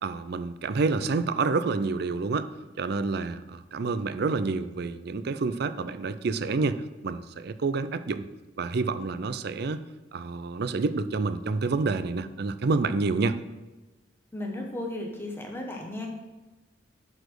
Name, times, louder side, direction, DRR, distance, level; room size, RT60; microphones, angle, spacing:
voice 1, 0.0-2.5 2.8-8.3 8.6-9.8 10.1-13.4, right 3 dB, 55° right, 13 dB, 0.5 m, -28 dB
voice 2, 14.3-16.1, left 1 dB, 10° left, 0 dB, 1.2 m, -35 dB
11.5 x 4.2 x 4.7 m, 1.2 s
head